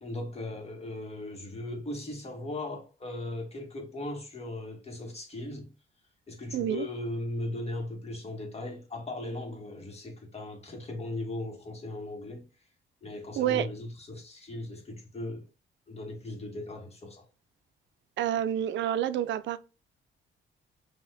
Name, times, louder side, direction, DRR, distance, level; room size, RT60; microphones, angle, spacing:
voice 1, 0.0-5.7 6.3-12.5 13.0-15.4 15.9-17.3, left 2 dB, 30° left, 1.7 m, -38 dB
voice 2, 6.5-6.9 13.4-13.7 18.2-19.6, right 10 dB, 70° right, 0.4 m, -28 dB
6.3 x 2.8 x 2.6 m
cardioid pair, 90°, 20 cm